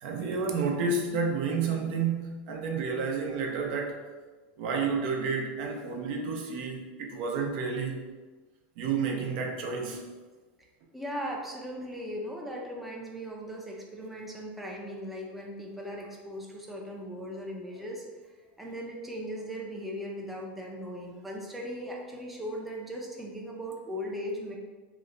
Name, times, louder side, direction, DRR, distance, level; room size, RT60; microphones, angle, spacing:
voice 1, 0.0-4.0 4.6-8.1 8.8-10.0, right 4 dB, 60° right, 2 dB, 0.6 m, -30 dB
voice 2, 10.9-18.0 18.6-24.6, equal, ahead, -2 dB, 0.4 m, -38 dB
3.0 x 2.1 x 3.7 m, 1.3 s
supercardioid pair, 130°, 6 cm